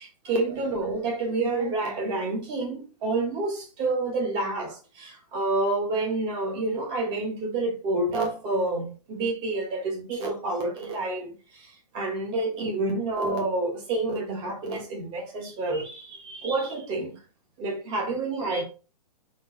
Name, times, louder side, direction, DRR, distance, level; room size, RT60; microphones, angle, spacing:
voice 1, 0.0-11.3 11.9-17.2 17.6-18.6, right 2 dB, 20° right, 1.2 m, -28 dB
3.9 x 3.0 x 3.7 m
hypercardioid pair, 165°, 20 cm